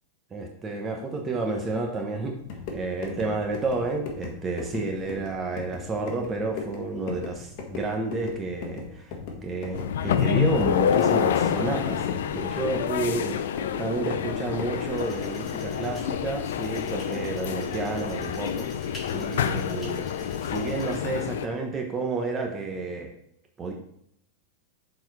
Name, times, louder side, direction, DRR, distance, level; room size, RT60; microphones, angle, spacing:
voice 1, 0.3-2.4 2.7-9.1 9.4-13.4 13.8-18.7 19.1-20.1 20.4-23.1 23.6-23.7, right 3 dB, 20° right, 2 dB, 0.9 m, -30 dB
sound 1, 2.4-15.0, left 4 dB, 45° left, 1.5 m, -38 dB
sound 2, 9.7-21.5, left 8 dB, 80° left, 0.5 m, -28 dB
sound 3, 14.9-21.0, left 1 dB, 10° left, 2.9 m, -44 dB
6.8 x 4.3 x 4.8 m, 0.73 s
supercardioid pair, 145°, 0 cm